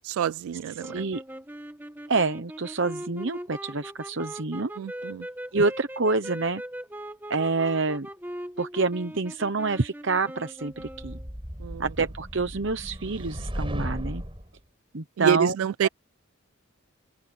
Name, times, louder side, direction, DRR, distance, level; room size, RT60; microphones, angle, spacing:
voice 1, 0.1-1.0 4.8-5.3 11.6-11.9 15.2-15.9, right 8 dB, 80° right, 0.3 m, -27 dB
voice 2, 0.7-1.2 2.1-4.7 5.5-6.6 7.3-8.1 8.6-11.2 11.8-14.2 14.9-15.5 15.8-15.9, right 3 dB, 60° right, 0.9 m, -27 dB
sound 1, 0.8-11.3, right 1 dB, 10° right, 1.4 m, -40 dB
sound 2, 10.8-14.5, equal, 25° right, 5.1 m, -35 dB
open air
head